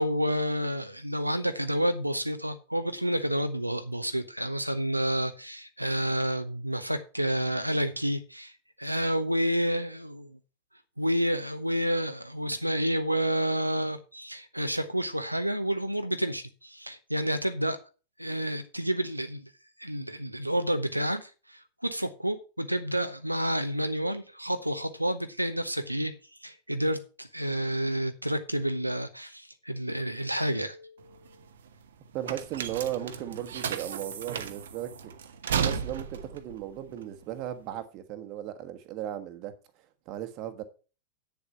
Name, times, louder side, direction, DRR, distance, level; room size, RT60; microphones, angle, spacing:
voice 1, 0.0-8.5 8.8-10.3 11.0-17.8 18.2-19.4 19.8-26.1 26.4-31.0, equal, 90° right, 0.8 m, -29 dB
sound 1, 31.0-37.8, right 7 dB, 65° right, 1.0 m, -34 dB
voice 2, 32.1-35.1 35.6-39.5 40.1-40.6, right 11 dB, 40° right, 1.4 m, -36 dB
9.4 x 7.1 x 5.6 m
figure-of-eight pair, 90°, 0 cm